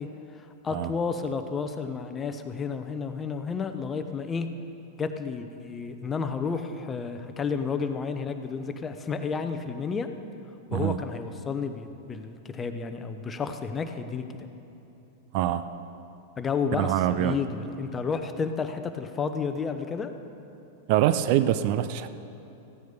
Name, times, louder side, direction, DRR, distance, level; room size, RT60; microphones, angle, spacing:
voice 1, 0.0-4.5 5.0-10.1 10.7-14.5 16.4-20.1, left 5 dB, 20° left, 8 dB, 0.8 m, -31 dB
voice 2, 16.8-17.4 20.9-22.1, right 12 dB, 50° right, 12 dB, 0.4 m, -24 dB
14.5 x 9.4 x 5.1 m, 2.9 s
figure-of-eight pair, 95°, 0 cm